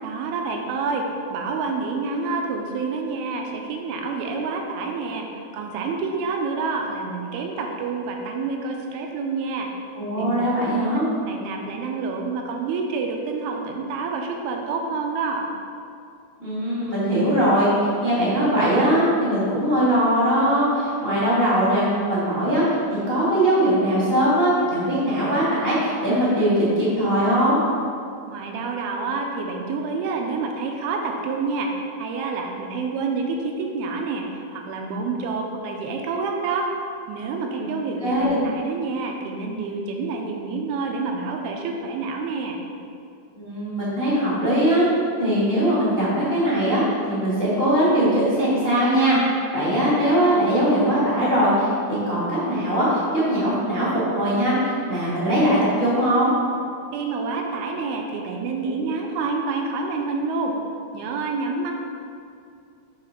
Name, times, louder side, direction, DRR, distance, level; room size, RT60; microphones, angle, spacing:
voice 1, 0.0-9.7 10.2-10.6 10.9-15.5 28.3-31.7 32.0-36.7 37.1-42.6 56.9-60.6 60.9-61.7, right 4 dB, 90° right, 2 dB, 2.6 m, -28 dB
voice 2, 9.9-11.1 16.4-22.6 23.1-27.6 37.5-37.6 38.0-38.4 43.3-44.9 45.2-46.8 47.1-56.3, right 1 dB, 60° left, -9 dB, 0.6 m, -21 dB
7.5 x 3.8 x 5.8 m, 2.4 s
omnidirectional pair, 4.4 m